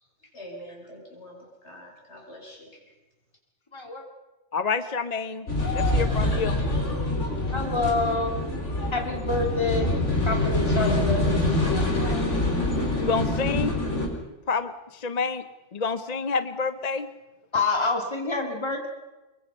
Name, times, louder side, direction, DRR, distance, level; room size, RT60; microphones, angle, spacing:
voice 1, 0.2-2.8, equal, 70° left, -1 dB, 6.5 m, -45 dB
voice 2, 3.7-4.0 7.5-8.5 8.9-9.9 10.3-11.2 11.7-12.2 17.5-18.9, left 3 dB, 25° left, 4 dB, 2.4 m, -27 dB
voice 3, 4.5-5.5 5.7-6.6 13.0-13.8 14.5-15.4 15.7-17.1, left 4 dB, 40° left, 12 dB, 0.8 m, -28 dB
sound 1, 5.5-14.1, left 2 dB, 85° left, 4.4 m, -25 dB
25.0 x 22.5 x 5.5 m, 1.1 s
omnidirectional pair, 1.2 m